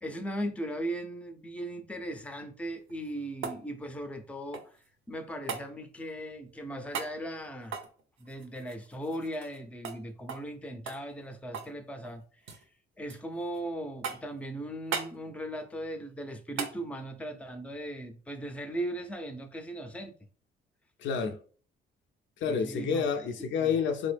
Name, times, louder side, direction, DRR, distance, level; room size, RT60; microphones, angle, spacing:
voice 1, 0.0-4.7 5.1-7.8 8.2-12.6 13.0-20.1 22.4-23.0 23.4-23.7, right 1 dB, 5° left, 0.5 m, -38 dB
sound 1, 2.8-4.9 5.5-5.7 6.9-7.2 7.6-9.6 9.8-10.0 10.3-10.5 10.9-11.8 12.0-12.6 13.1-13.6 14.0-14.4 14.9-15.2 16.6-16.8 19.1-19.2, right 6 dB, 80° right, 0.6 m, -38 dB
voice 2, 21.0-21.4 22.4-24.1, left 6 dB, 70° left, 0.5 m, -29 dB
3.5 x 2.0 x 3.3 m
cardioid pair, 90°, 20 cm